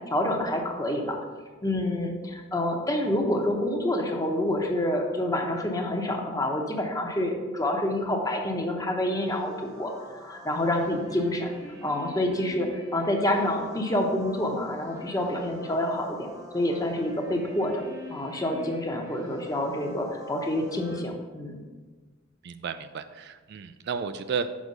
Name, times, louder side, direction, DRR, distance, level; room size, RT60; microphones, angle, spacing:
voice 1, 0.1-1.2 1.6-11.5 11.8-16.3 16.5-17.8 18.1-21.6, left 1 dB, 15° left, 2 dB, 0.8 m, -27 dB
sound 1, 9.1-21.0, equal, 15° right, 0.9 m, -46 dB
voice 2, 22.4-24.5, right 6 dB, 55° right, 10 dB, 0.3 m, -33 dB
6.2 x 4.8 x 5.4 m, 1.4 s
head